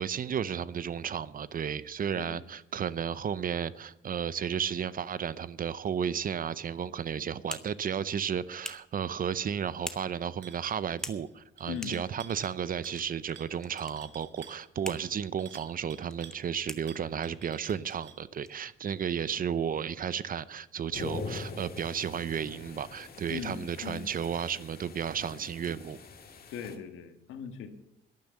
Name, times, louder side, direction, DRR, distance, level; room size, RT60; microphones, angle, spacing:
voice 1, 0.0-26.0, right 8 dB, 45° right, 0.6 m, -33 dB
voice 2, 2.1-2.4 11.7-12.0 23.3-24.1 26.5-27.7, left 7 dB, 85° left, 1.7 m, -39 dB
sound 1, 6.9-19.3, left 1 dB, 5° left, 1.2 m, -48 dB
sound 2, 10.4-10.7 11.0-11.3 11.6-12.6 12.8-13.1 13.4-16.4 16.9-18.2, right 8 dB, 65° right, 1.3 m, -51 dB
sound 3, 20.9-26.8, left 4 dB, 50° left, 2.0 m, -43 dB
12.0 x 10.5 x 7.1 m
cardioid pair, 90°, 20 cm